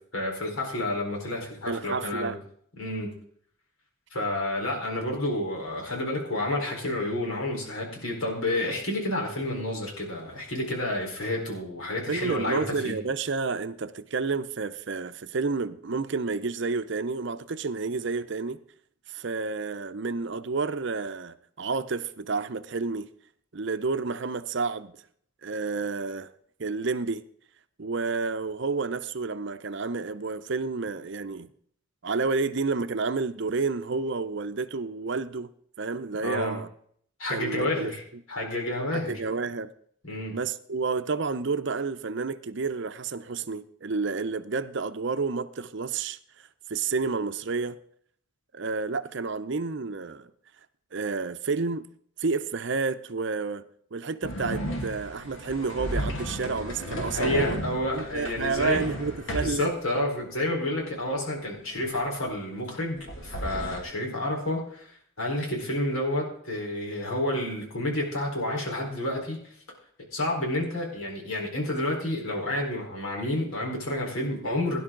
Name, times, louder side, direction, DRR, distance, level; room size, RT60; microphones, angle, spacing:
voice 1, 0.1-2.4 2.8-3.1 4.1-12.9 36.2-36.6 37.2-38.0 38.3-39.2 40.0-40.3 57.1-58.8 59.3-69.5 70.1-74.8, left 1 dB, 85° left, 4.3 m, -30 dB
voice 2, 1.7-2.4 12.1-18.6 19.1-23.1 23.5-25.0 25.4-26.3 26.6-27.2 27.8-31.5 32.0-35.5 35.8-36.7 37.3-37.9 39.1-39.7 40.3-46.2 46.7-47.8 48.5-50.3 50.9-51.9 52.2-53.6 53.9-57.6 57.9-59.7, right 4 dB, 55° right, 0.6 m, -30 dB
sound 1, 54.2-59.6 63.0-63.8, equal, 70° left, 2.3 m, -33 dB
17.5 x 11.0 x 3.8 m
head